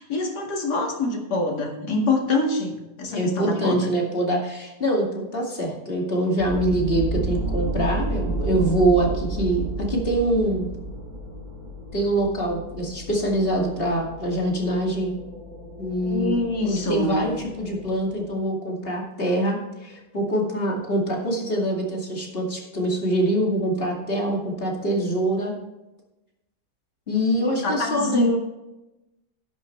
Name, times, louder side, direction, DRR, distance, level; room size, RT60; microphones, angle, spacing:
voice 1, 0.0-3.9 16.0-17.2 27.4-28.4, left 2 dB, 75° left, 1 dB, 2.6 m, -25 dB
voice 2, 3.1-10.6 11.9-15.1 15.8-25.5 27.1-28.3, right 1 dB, 35° left, -1 dB, 2.6 m, -24 dB
sound 1, 6.4-18.3, right 2 dB, 60° right, 5.1 m, -32 dB
12.0 x 10.5 x 3.3 m, 1.0 s
omnidirectional pair, 1.8 m